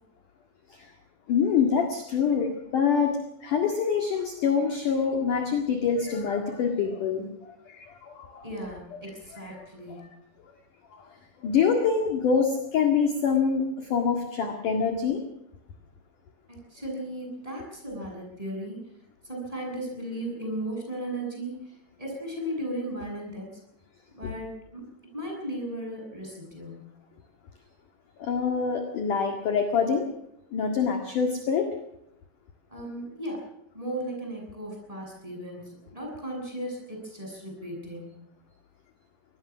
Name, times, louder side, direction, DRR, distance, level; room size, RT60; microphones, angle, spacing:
voice 1, 1.3-7.3 7.7-8.4 9.6-9.7 10.0-10.1 11.0-11.1 11.4-15.2 28.2-30.1 30.5-31.7, left 6 dB, 55° left, 4 dB, 2.9 m, -25 dB
voice 2, 8.4-10.1 16.5-18.8 19.2-23.6 24.1-24.8 25.1-26.9 32.7-33.5 33.7-38.1, right 1 dB, 5° right, 0 dB, 7.5 m, -36 dB
24.0 x 19.5 x 6.2 m, 0.79 s
omnidirectional pair, 5.4 m